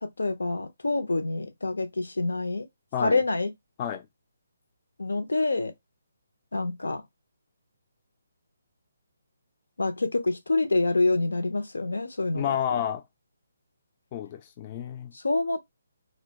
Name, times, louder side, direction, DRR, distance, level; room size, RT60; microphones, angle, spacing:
voice 1, 0.0-2.7 3.0-3.5 5.0-5.7 6.5-7.0 9.8-12.4 12.7-12.8 15.2-15.6, left 2 dB, 90° left, 0.5 m, -26 dB
voice 2, 12.3-13.0 14.1-15.1, left 9 dB, 30° left, 0.3 m, -30 dB
2.1 x 2.1 x 2.7 m
hypercardioid pair, 155°, 0 cm